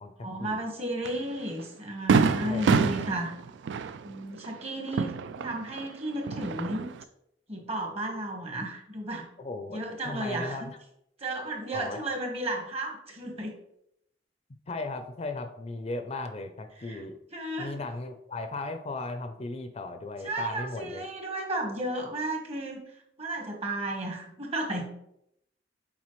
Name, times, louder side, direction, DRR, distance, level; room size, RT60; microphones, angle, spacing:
voice 1, 0.2-3.3 4.0-6.9 7.5-9.3 9.7-10.7 11.2-13.5 16.8-17.0 17.3-17.8 20.2-22.8 23.2-24.9, right 1 dB, 35° right, 1 dB, 1.4 m, -33 dB
Fireworks, 1.0-1.2 1.6-1.7 2.1-5.9 6.2-7.0, right 5 dB, 70° right, 0.3 m, -27 dB
voice 2, 2.4-2.8 9.4-10.8 11.7-12.0 14.7-17.2 17.6-21.0, left 2 dB, 35° left, 7 dB, 0.5 m, -36 dB
7.3 x 4.5 x 3.1 m, 0.79 s
head